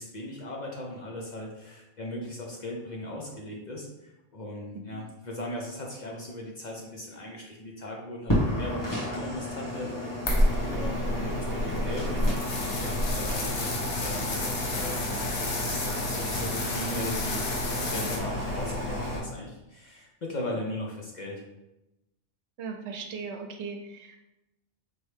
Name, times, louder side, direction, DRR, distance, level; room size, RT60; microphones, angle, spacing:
voice 1, 0.0-15.1 15.5-21.4, left 1 dB, 45° left, -1 dB, 0.7 m, -38 dB
sound 1, 8.3-19.2, equal, 15° left, 1.2 m, -30 dB
sound 2, 10.3-10.6 11.5-18.2, left 3 dB, 75° left, 1.0 m, -34 dB
voice 2, 17.8-18.1 22.6-24.2, right 5 dB, 70° right, 3 dB, 0.9 m, -38 dB
4.4 x 3.1 x 3.2 m, 0.95 s
omnidirectional pair, 1.2 m